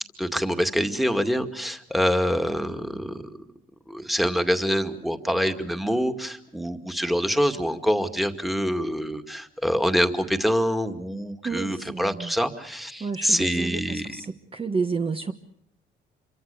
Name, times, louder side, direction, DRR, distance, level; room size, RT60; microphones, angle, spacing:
voice 1, 0.2-3.5 3.9-14.2, equal, ahead, 7 dB, 2.2 m, -25 dB
voice 2, 11.4-12.3 13.0-14.3 14.5-15.3, right 4 dB, 25° right, 6 dB, 1.3 m, -30 dB
27.0 x 24.0 x 6.9 m, 0.69 s
cardioid pair, 90°, 20 cm